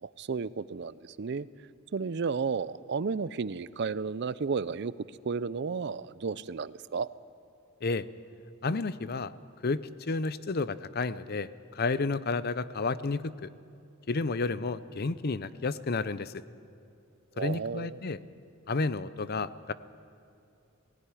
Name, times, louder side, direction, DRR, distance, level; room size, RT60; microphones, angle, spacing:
voice 1, 0.0-1.5 1.9-4.9 5.3-7.1 17.4-18.0, right 5 dB, 55° right, 18 dB, 0.5 m, -33 dB
voice 2, 8.6-9.3 9.6-13.5 14.1-16.3 17.4-18.2 18.7-19.7, left 3 dB, 45° left, 15 dB, 0.6 m, -31 dB
18.5 x 16.5 x 9.9 m, 2.6 s
head